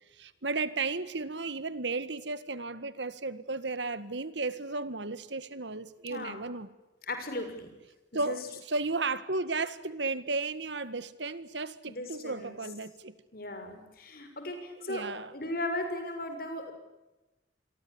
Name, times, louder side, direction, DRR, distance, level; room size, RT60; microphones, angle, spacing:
voice 1, 0.2-6.7 8.1-13.1 14.8-15.3, right 3 dB, 75° right, 1.8 m, -34 dB
voice 2, 6.1-6.5 7.1-7.7 8.2-8.4 11.8-12.6 13.3-15.0 15.3-16.7, left 1 dB, 50° left, 6.6 m, -37 dB
28.5 x 23.0 x 8.7 m
head